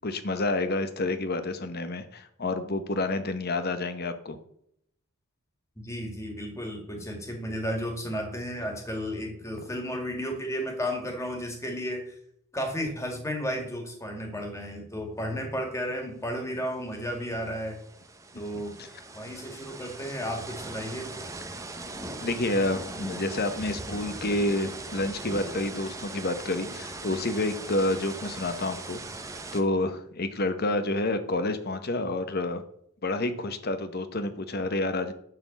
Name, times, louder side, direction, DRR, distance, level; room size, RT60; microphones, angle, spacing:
voice 1, 0.0-4.4 22.2-29.0 29.5-32.6 33.0-35.1, left 2 dB, 45° left, 9 dB, 1.0 m, -29 dB
voice 2, 5.8-12.1 12.5-17.8 18.4-18.7 19.1-21.1, equal, 15° left, 3 dB, 2.0 m, -33 dB
sound 1, 16.7-16.8 17.0-29.6, right 2 dB, 15° right, 0.8 m, -40 dB
11.0 x 4.3 x 7.2 m, 0.71 s
head